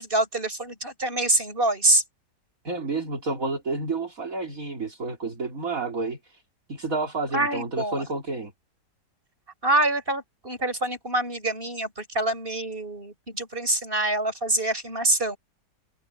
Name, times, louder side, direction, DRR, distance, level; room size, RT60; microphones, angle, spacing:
voice 1, 0.0-2.0 7.3-8.0 9.6-15.4, right 2 dB, 30° right, 7.4 m, -25 dB
voice 2, 2.6-6.4 6.7-8.5, right 3 dB, 50° right, 3.8 m, -30 dB
omnidirectional pair, 1.9 m